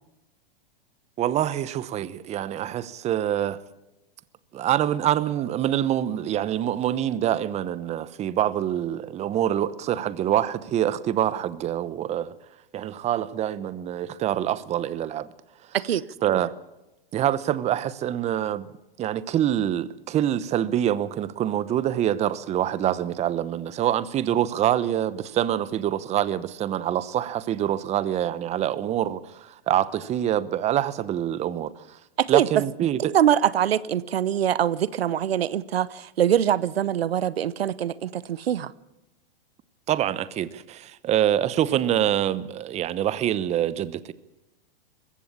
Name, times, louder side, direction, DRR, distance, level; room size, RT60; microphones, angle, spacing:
voice 1, 1.2-3.6 4.5-12.4 12.7-15.3 15.6-15.8 16.2-16.5 17.1-18.7 19.0-32.0 32.3-33.1 39.9-44.1, right 11 dB, 20° right, 0.9 m, -25 dB
voice 2, 33.1-38.7, right 10 dB, 90° right, 0.9 m, -23 dB
21.0 x 16.0 x 8.6 m
hypercardioid pair, 135°, 29 cm